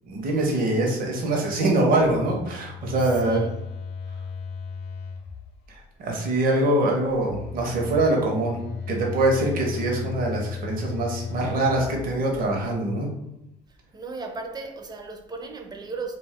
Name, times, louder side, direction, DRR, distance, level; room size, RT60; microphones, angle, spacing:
voice 1, 0.1-3.4 6.0-8.6 8.9-13.1, right 2 dB, 55° right, 0.7 m, -23 dB
Telephone, 1.9-5.9 7.0-12.7, left 5 dB, 75° left, 0.4 m, -36 dB
voice 2, 3.1-3.5 13.9-16.2, right 4 dB, 25° right, 0.5 m, -35 dB
2.3 x 2.3 x 3.4 m
cardioid pair, 110°, 17 cm